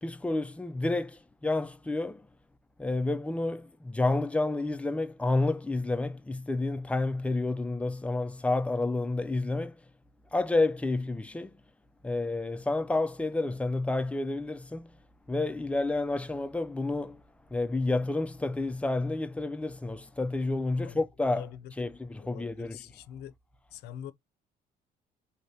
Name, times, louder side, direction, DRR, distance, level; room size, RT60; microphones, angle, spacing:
voice 1, 0.0-2.3 2.8-9.8 10.3-11.6 12.0-14.9 15.3-17.2 17.5-21.5 21.8-22.8, left 2 dB, 5° left, 0.4 m, -30 dB
voice 2, 20.8-21.7 22.2-23.3 23.7-24.1, left 10 dB, 75° left, 0.5 m, -45 dB
3.2 x 2.7 x 2.7 m
cardioid pair, 110°, 17 cm